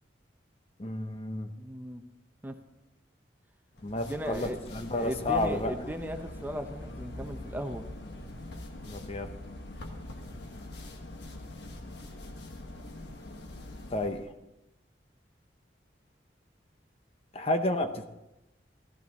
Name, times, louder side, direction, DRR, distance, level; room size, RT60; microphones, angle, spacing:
voice 1, 0.8-1.5 3.8-5.7 8.8-9.3 13.9-14.3 17.3-18.1, left 2 dB, 35° left, 7 dB, 0.8 m, -31 dB
voice 2, 1.6-2.0 2.4-2.5 4.0-4.6 4.9-7.8, equal, 10° right, 5 dB, 0.8 m, -37 dB
sound 1, 3.7-14.3, left 1 dB, 75° left, 1.5 m, -43 dB
14.5 x 14.0 x 4.2 m, 0.92 s
head